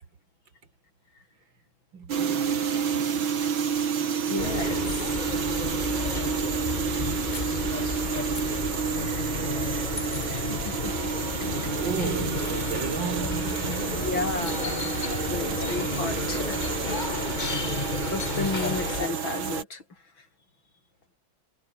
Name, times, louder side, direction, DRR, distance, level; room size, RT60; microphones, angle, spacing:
voice 1, 1.9-3.3 8.5-9.7 11.7-14.3 15.2-15.8, right 5 dB, 65° right, 3.1 m, -36 dB
sound 1, 2.1-19.6, right 7 dB, 85° right, 2.8 m, -30 dB
voice 2, 4.3-5.2 10.3-10.9 11.6-11.7 13.9-16.6 18.1-19.8, left 3 dB, 75° left, 5.3 m, -33 dB
sound 2, 4.4-19.1, left 5 dB, 30° left, 1.0 m, -32 dB
omnidirectional pair, 2.2 m